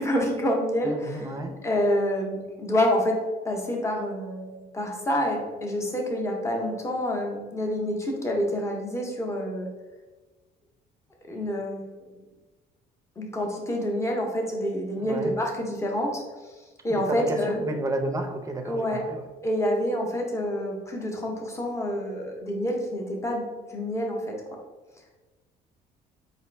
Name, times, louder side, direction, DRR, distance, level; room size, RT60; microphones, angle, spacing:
voice 1, 0.0-1.3 1.6-3.1 3.4-9.7 11.3-11.9 13.2-16.5 16.8-17.6 18.6-19.0 19.4-24.3, equal, 15° left, 0 dB, 0.8 m, -27 dB
voice 2, 0.8-1.6 14.9-15.4 16.9-19.3, right 2 dB, 20° right, 5 dB, 0.5 m, -32 dB
4.2 x 2.5 x 3.2 m, 1.2 s
cardioid pair, 110°, 17 cm